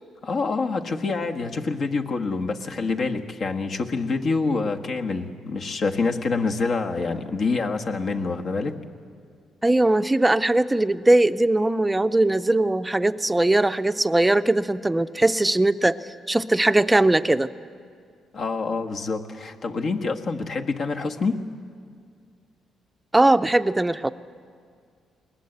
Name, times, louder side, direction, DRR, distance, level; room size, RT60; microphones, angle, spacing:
voice 1, 0.2-8.8 18.3-21.4, left 4 dB, 55° left, 4 dB, 1.5 m, -26 dB
voice 2, 9.6-15.9 16.3-17.5 23.1-24.1, right 2 dB, 10° right, 13 dB, 0.6 m, -20 dB
21.0 x 19.0 x 8.0 m, 2.2 s
cardioid pair, 90°, 0 cm